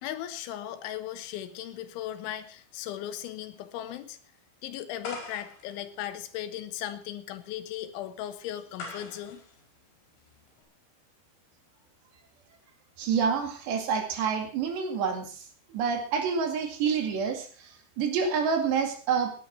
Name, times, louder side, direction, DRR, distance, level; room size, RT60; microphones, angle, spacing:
voice 1, 0.0-4.2 4.6-9.4, left 11 dB, 85° left, 10 dB, 3.6 m, -37 dB
sound 1, 5.0-10.6, left 3 dB, 65° left, 6.8 m, -45 dB
voice 2, 13.0-15.4 15.7-19.3, right 6 dB, 70° right, 4 dB, 4.4 m, -28 dB
19.0 x 10.5 x 4.6 m, 0.39 s
omnidirectional pair, 5.3 m